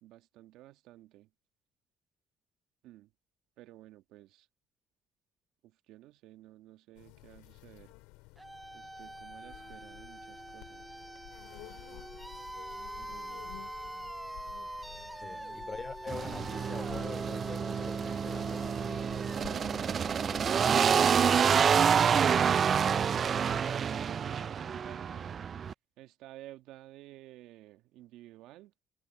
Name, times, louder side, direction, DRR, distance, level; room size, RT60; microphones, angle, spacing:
voice 1, 0.0-1.3 2.8-3.1 3.6-4.5 5.9-7.9 8.7-11.0 13.0-13.4 15.2-15.6 21.8-25.4 26.0-28.8, right 15 dB, 75° right, 1.4 m, -53 dB
sound 1, 7.0-23.7, left 24 dB, 85° left, 3.7 m, -52 dB
sound 2, 8.4-21.2, right 1 dB, 10° right, 0.6 m, -44 dB
voice 2, 15.2-18.7, left 4 dB, 30° left, 2.7 m, -44 dB
sound 3, 16.1-25.7, right 7 dB, 50° right, 0.3 m, -28 dB
supercardioid pair, 65°, 0 cm